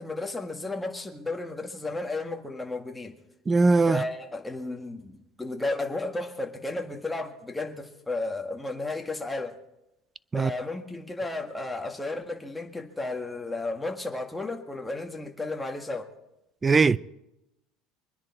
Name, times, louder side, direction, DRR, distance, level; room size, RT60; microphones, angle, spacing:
voice 1, 0.0-3.2 3.9-9.6 10.3-16.1, left 2 dB, 5° left, 1.8 m, -33 dB
voice 2, 3.5-4.0 10.3-10.5 16.6-17.0, right 4 dB, 20° right, 0.5 m, -20 dB
24.5 x 10.0 x 4.4 m
cardioid pair, 130°, 0 cm